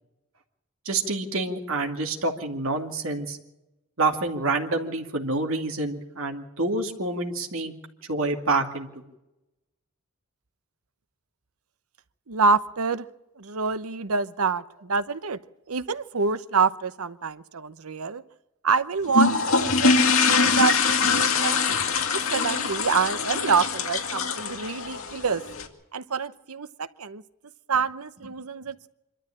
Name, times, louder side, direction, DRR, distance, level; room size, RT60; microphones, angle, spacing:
voice 1, 0.9-3.4 4.0-7.7 8.1-8.9, right 2 dB, 65° right, 3 dB, 2.5 m, -27 dB
voice 2, 12.3-13.1 13.4-15.4 15.7-18.2 18.6-19.3 19.6-21.8 22.1-25.4 25.9-27.2 27.7-28.9, right 5 dB, 85° right, 14 dB, 0.9 m, -26 dB
sound 1, 19.1-25.7, left 4 dB, 70° left, 2.1 m, -23 dB
25.5 x 13.0 x 8.8 m, 0.95 s
head